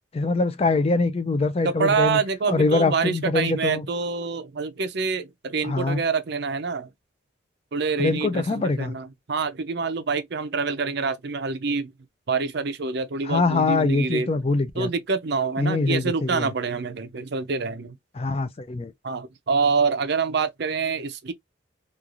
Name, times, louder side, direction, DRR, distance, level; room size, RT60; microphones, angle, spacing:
voice 1, 0.1-2.2 2.5-3.9 5.6-6.0 8.0-9.0 13.2-14.9 15.6-16.5 18.2-18.9, left 3 dB, 30° left, 0.4 m, -23 dB
voice 2, 1.6-6.9 7.7-11.9 12.3-14.3 14.8-18.0 19.0-21.3, right 4 dB, 55° right, 0.5 m, -26 dB
3.1 x 2.4 x 2.4 m
head